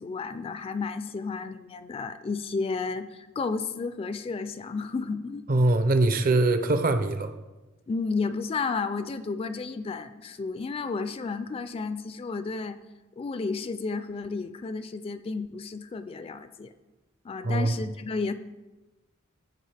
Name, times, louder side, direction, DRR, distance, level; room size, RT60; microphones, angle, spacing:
voice 1, 0.0-5.4 7.9-12.8 13.2-16.7 17.2-18.3, left 4 dB, 25° left, 11 dB, 0.3 m, -32 dB
voice 2, 5.5-7.3 17.4-17.8, right 2 dB, 40° right, 10 dB, 0.5 m, -22 dB
14.5 x 4.8 x 3.4 m, 1.1 s
head